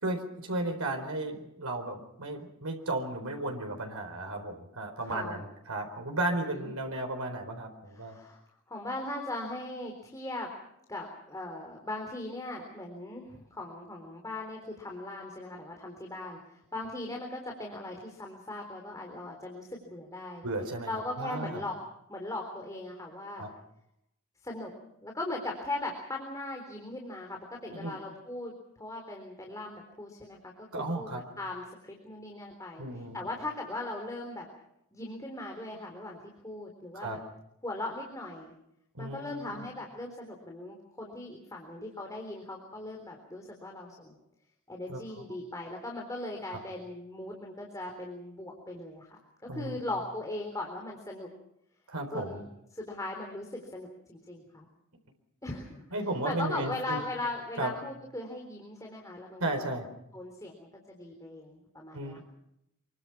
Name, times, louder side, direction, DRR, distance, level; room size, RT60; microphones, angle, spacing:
voice 1, 0.0-8.2 20.4-20.9 21.2-21.6 23.4-23.5 27.7-27.9 30.7-31.2 32.8-33.2 36.9-37.2 38.9-39.7 44.9-45.0 46.5-46.6 49.5-49.8 51.9-52.4 55.9-57.0 57.6-57.7 59.4-59.9 61.9-62.2, right 2 dB, 90° right, 4 dB, 4.4 m, -34 dB
voice 2, 5.0-5.4 6.4-6.7 7.9-8.4 8.7-10.5 10.9-20.4 20.9-21.7 22.1-23.4 24.4-24.7 25.0-31.1 31.4-34.5 34.9-36.2 36.4-37.2 37.6-38.5 39.0-44.1 44.7-49.2 49.5-51.3 52.1-52.5 52.7-54.7 55.4-55.7 56.2-59.4 60.1-62.2, left 2 dB, 15° left, 1 dB, 3.8 m, -39 dB
26.0 x 24.0 x 6.0 m, 0.80 s
head